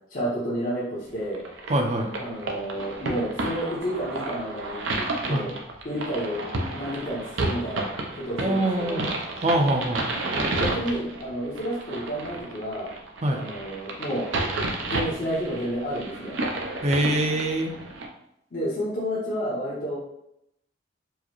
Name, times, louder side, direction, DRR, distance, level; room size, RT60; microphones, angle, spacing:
voice 1, 0.1-1.4 2.2-4.8 5.2-5.5 5.8-7.9 8.2-9.1 10.3-12.9 13.3-14.3 14.8-16.4 18.5-20.0, equal, 50° left, -8 dB, 0.8 m, -30 dB
sound 1, 1.3-18.1, right 2 dB, 85° right, 0.6 m, -31 dB
voice 2, 1.7-2.1 5.2-5.5 8.4-10.0 13.2-13.4 16.8-17.7, right 1 dB, 35° right, 3 dB, 0.5 m, -24 dB
4.6 x 2.1 x 3.0 m, 0.79 s
head